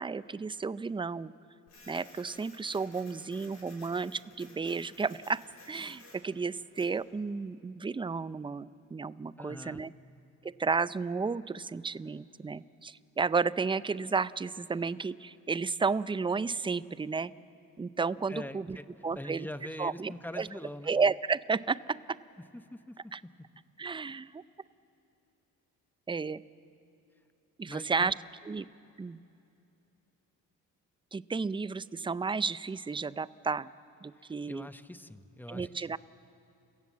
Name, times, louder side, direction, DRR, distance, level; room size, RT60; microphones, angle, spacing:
voice 1, 0.0-1.3 1.9-9.9 10.4-17.3 17.8-18.8 19.0-19.5 19.8-20.5 20.9-22.2 23.1-23.2 23.8-24.4 26.1-26.4 27.6-28.1 28.5-28.7 29.0-29.2 31.1-33.7 34.0-34.7 35.5-36.0, right 4 dB, 15° right, 17 dB, 0.5 m, -32 dB
Printer, 1.7-7.0, left 2 dB, 55° left, 7.5 m, -55 dB
voice 2, 9.4-9.8 18.3-18.8 19.1-20.9 22.5-23.1 27.7-28.1 34.2-35.9, left 1 dB, 5° left, 11 dB, 1.0 m, -43 dB
30.0 x 16.5 x 7.4 m, 2.7 s
supercardioid pair, 75°, 33 cm